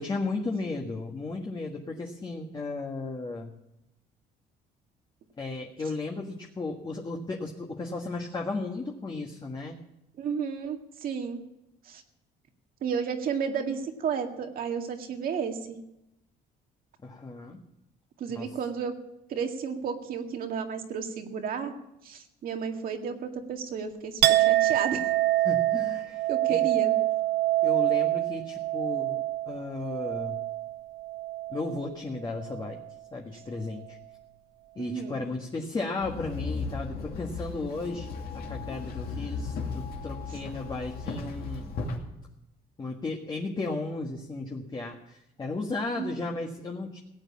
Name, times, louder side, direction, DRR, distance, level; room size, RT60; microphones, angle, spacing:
voice 1, 0.0-3.5 5.4-9.8 17.0-17.6 18.3-18.5 25.4-26.2 26.5-26.6 27.6-30.4 31.5-32.8 33.1-34.0 34.7-41.7 42.8-47.0, left 3 dB, 25° left, 0 dB, 1.6 m, -35 dB
voice 2, 10.2-11.4 11.8-12.0 12.8-15.8 18.2-18.9 19.3-21.7 22.0-25.0 26.3-26.9 34.8-35.2 46.0-46.2, right 6 dB, 60° right, 4 dB, 2.0 m, -32 dB
Chink clink, 24.2-31.9 32.2-32.9, right 15 dB, 85° right, 0.6 m, -26 dB
Walk footsteps / Chatter / Hiss, 36.0-42.0, left 4 dB, 65° left, 2.4 m, -36 dB
17.0 x 8.1 x 8.6 m, 0.86 s
cardioid pair, 110°, 17 cm